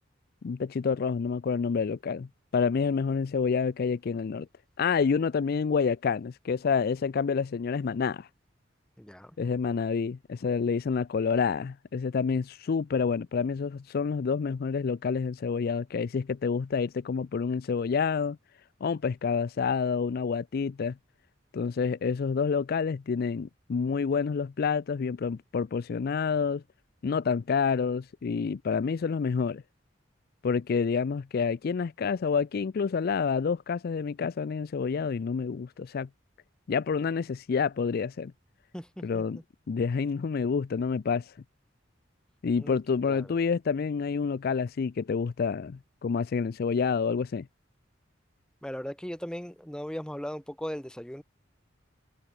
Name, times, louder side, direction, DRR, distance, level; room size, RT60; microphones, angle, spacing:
voice 1, 0.4-4.5 4.8-8.3 9.4-18.4 18.8-21.0 21.5-26.6 27.0-29.6 30.4-36.1 36.7-38.3 39.0-39.4 39.7-41.3 42.4-47.5, left 5 dB, 50° left, 0.4 m, -28 dB
voice 2, 9.0-9.4 38.7-39.4 42.6-42.8 43.0-43.3 48.6-51.2, equal, 5° left, 1.1 m, -38 dB
head